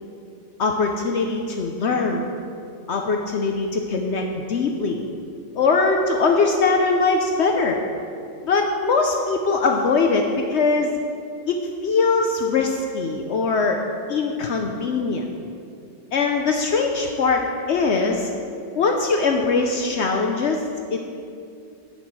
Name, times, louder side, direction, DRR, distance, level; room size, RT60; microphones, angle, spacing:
voice 1, 0.6-2.2 2.9-5.1 5.6-7.8 8.4-10.9 11.5-11.6 11.8-13.8 14.1-15.3 16.1-18.3 18.8-20.6 20.9-21.0, left 4 dB, 70° left, 3 dB, 1.0 m, -21 dB
9.7 x 8.1 x 6.1 m, 2.4 s
omnidirectional pair, 1.2 m